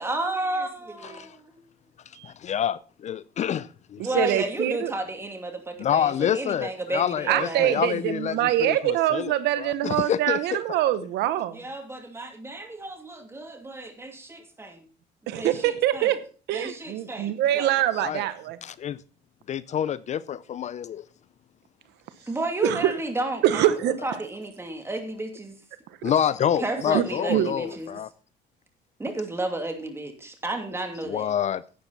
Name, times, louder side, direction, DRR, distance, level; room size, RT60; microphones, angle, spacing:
voice 1, 0.0-1.6 4.0-7.8 11.5-14.9 15.2-16.1 16.5-17.7 22.3-25.5 26.6-27.9 29.0-31.3, right 2 dB, 15° right, 2.6 m, -32 dB
voice 2, 1.0-1.4 2.2-4.3 5.8-10.4 17.9-18.3 18.6-19.0 19.5-21.0 26.0-28.1 31.1-31.6, left 9 dB, 45° left, 0.5 m, -27 dB
voice 3, 4.0-4.9 7.3-11.6 15.3-16.2 16.5-18.6 22.6-22.9 23.4-24.0 26.9-27.0 27.3-27.5, right 13 dB, 85° right, 1.0 m, -24 dB
11.5 x 9.2 x 4.0 m
cardioid pair, 110°, 17 cm